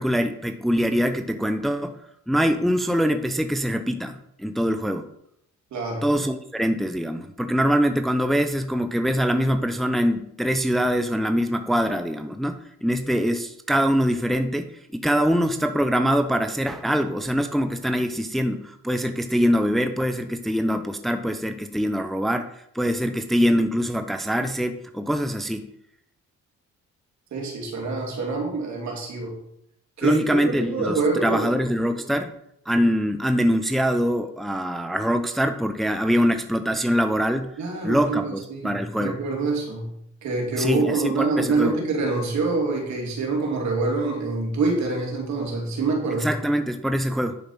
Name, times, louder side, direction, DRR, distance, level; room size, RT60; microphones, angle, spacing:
voice 1, 0.0-2.0 2.3-5.1 6.0-14.7 14.9-22.5 22.7-25.7 30.0-32.3 32.7-39.2 40.6-41.7 46.2-47.4, equal, ahead, 7 dB, 0.8 m, -23 dB
voice 2, 5.7-6.2 27.3-29.4 30.0-31.5 37.6-39.9 40.2-46.3, right 3 dB, 65° right, 1 dB, 3.2 m, -26 dB
10.5 x 5.1 x 5.9 m, 0.74 s
cardioid pair, 90°, 30 cm